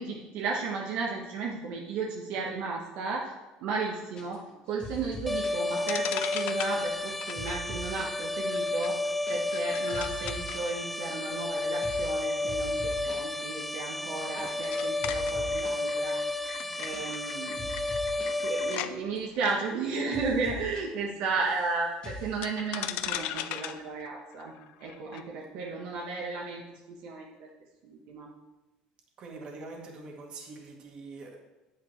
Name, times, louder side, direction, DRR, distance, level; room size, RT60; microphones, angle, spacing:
voice 1, 0.0-3.3 3.6-4.4 4.7-9.0 9.3-16.3 16.8-17.7 18.4-24.5 24.8-27.5 27.8-28.3, right 4 dB, 65° right, -2 dB, 1.4 m, -34 dB
sound 1, 4.2-4.5 4.8-5.6 6.1-8.2 8.5-8.6 8.8-9.3 9.6-10.6 10.9-11.5 11.8-12.1 12.5-13.3 13.6-13.7 13.9-14.8 15.0-15.8 16.3-18.4 18.7-18.8 19.0-19.9 20.1-20.8 21.1-21.7 22.0-22.4, equal, 35° left, 2.4 m, -43 dB
sound 2, 5.3-5.4 5.8-18.9 19.3-19.5 22.4-25.2, left 12 dB, 60° left, 0.5 m, -40 dB
sound 3, 5.3-18.8, left 2 dB, 5° left, 0.3 m, -32 dB
voice 2, 29.2-31.4, right 3 dB, 35° right, 0 dB, 2.0 m, -44 dB
10.5 x 9.3 x 3.3 m, 1.1 s
cardioid pair, 160°, 3 cm